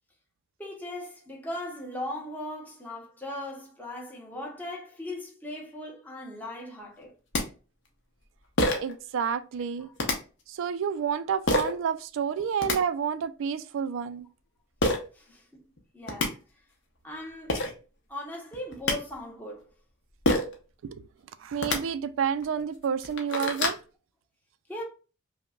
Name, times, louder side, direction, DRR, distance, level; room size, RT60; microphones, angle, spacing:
voice 1, 0.6-7.1 9.8-9.9 15.1-15.6 15.9-16.4 17.0-17.6 18.1-19.7 24.7-24.8, left 1 dB, 10° left, 0.7 m, -38 dB
sound 1, 7.0-7.1 7.3-7.4 8.6-8.9 10.0-10.2 11.5-11.7 12.4-12.8 14.8-15.0 15.8-15.9 16.1-16.3 17.2-17.3 17.5-17.7 18.5-19.0 20.3-20.6 21.5-21.8 22.4-22.5 22.9-23.8, left 2 dB, 60° left, 0.8 m, -26 dB
voice 2, 8.8-9.9 10.5-14.3 20.8-21.0 21.4-23.7, right 7 dB, 65° right, 0.3 m, -29 dB
5.1 x 2.1 x 2.3 m
head